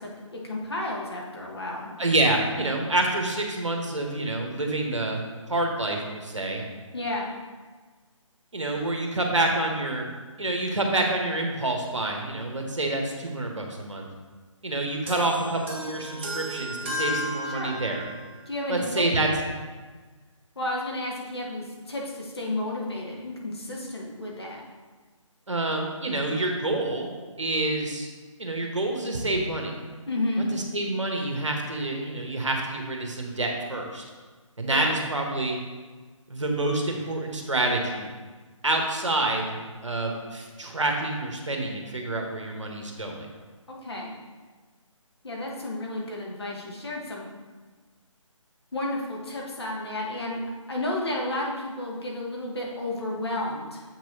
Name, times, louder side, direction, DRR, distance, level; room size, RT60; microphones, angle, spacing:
voice 1, 0.0-2.0 6.9-7.3 8.7-8.8 17.4-17.8 18.5-19.0 20.5-24.6 30.1-30.5 34.7-34.9 43.7-44.1 45.2-47.3 48.7-53.8, left 1 dB, 50° left, -2 dB, 1.4 m, -32 dB
voice 2, 2.0-5.2 5.5-6.6 8.5-10.1 10.4-14.1 14.6-18.1 18.7-19.3 25.5-27.1 27.4-28.1 28.4-29.7 30.5-34.0 34.6-35.6 36.3-38.1 38.6-43.3, right 2 dB, 65° right, 2 dB, 1.2 m, -27 dB
sound 1, 15.1-18.3, left 1 dB, 20° right, 0.7 m, -33 dB
7.2 x 6.0 x 2.9 m, 1.4 s
figure-of-eight pair, 155°, 17 cm